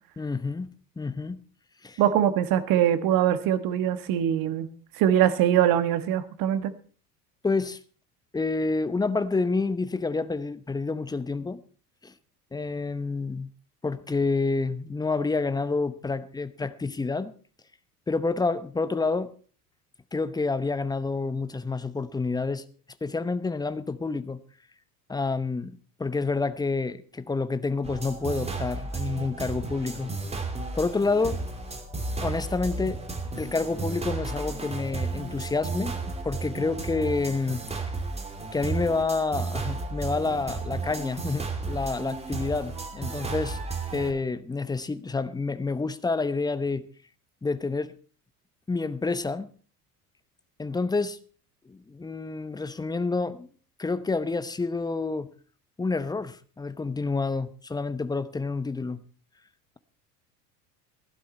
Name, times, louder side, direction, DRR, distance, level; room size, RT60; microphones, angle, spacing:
voice 1, 0.2-0.7 1.0-1.4 1.8-2.0 7.4-7.8 8.3-11.6 12.0-12.1 12.5-13.5 13.8-17.3 18.1-19.3 20.1-22.6 23.0-24.4 25.1-30.1 30.7-31.4 32.2-33.0 33.3-37.6 38.5-43.6 43.9-46.9 47.4-47.9 48.7-49.5 50.6-51.2 51.7-53.5 53.8-55.3 55.8-59.0, left 3 dB, 10° left, 0.8 m, -28 dB
voice 2, 2.0-4.7 5.0-6.7, right 10 dB, 45° right, 1.5 m, -22 dB
sound 1, 27.8-44.1, right 3 dB, 15° right, 2.9 m, -33 dB
16.5 x 11.5 x 4.3 m
figure-of-eight pair, 70°, 46 cm